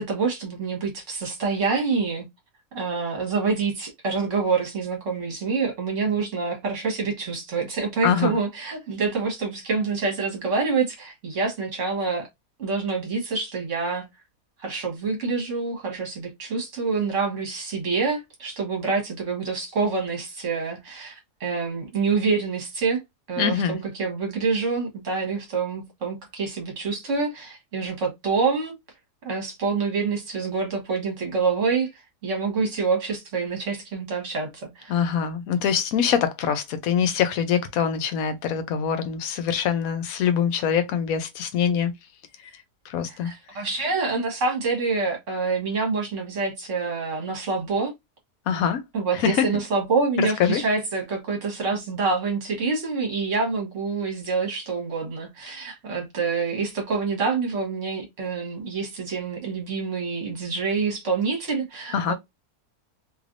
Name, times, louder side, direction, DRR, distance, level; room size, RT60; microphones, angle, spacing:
voice 1, 0.0-2.2 2.7-12.3 12.6-14.1 14.6-23.0 23.3-28.7 29.2-31.9 32.2-35.0 43.0-47.9 48.9-62.1, right 4 dB, 50° right, 1.6 m, -26 dB
voice 2, 8.0-8.3 23.4-23.8 34.9-41.9 42.9-43.3 48.5-48.8 49.1-49.5 50.2-50.6 61.9-62.1, left 8 dB, 70° left, 1.0 m, -24 dB
3.3 x 2.9 x 2.5 m
omnidirectional pair, 1.7 m